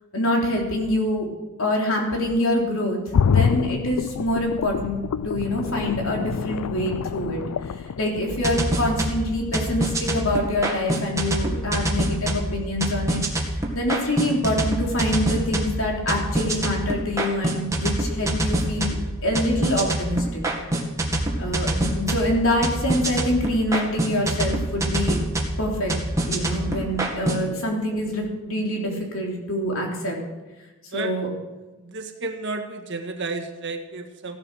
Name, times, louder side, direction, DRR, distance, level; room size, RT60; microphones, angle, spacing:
voice 1, 0.1-1.3 1.6-3.0 3.3-7.4 8.0-13.2 13.7-19.0 19.2-20.4 21.4-25.2 25.6-25.9 26.3-30.2 30.9-31.3, left 1 dB, 65° left, -1 dB, 3.7 m, -25 dB
sound 1, 3.1-8.9 9.3-9.4, left 6 dB, 90° left, 0.4 m, -26 dB
sound 2, 8.3-27.4, right 1 dB, 15° right, 1.9 m, -26 dB
voice 2, 31.8-34.4, right 3 dB, 55° right, 4 dB, 1.7 m, -32 dB
16.0 x 11.5 x 6.3 m, 1.2 s
head